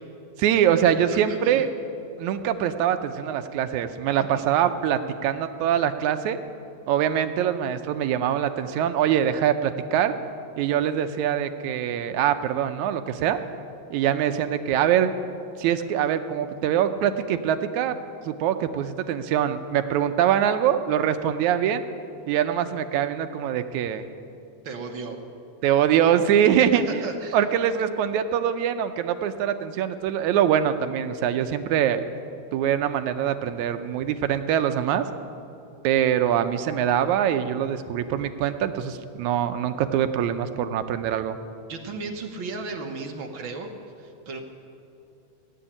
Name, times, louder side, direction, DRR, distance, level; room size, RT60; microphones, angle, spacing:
voice 1, 0.4-1.7 2.2-6.4 6.9-10.1 10.6-13.4 13.9-15.1 15.6-18.0 18.3-21.8 22.3-24.0 25.6-27.1 27.3-32.0 32.5-35.1 35.8-41.4, right 9 dB, 80° right, 9 dB, 2.0 m, -23 dB
voice 2, 1.1-1.7 24.6-25.2 26.6-27.4 41.7-43.7 44.0-44.4, right 4 dB, 60° right, 3 dB, 1.3 m, -35 dB
17.5 x 7.9 x 10.0 m, 2.8 s
omnidirectional pair, 3.5 m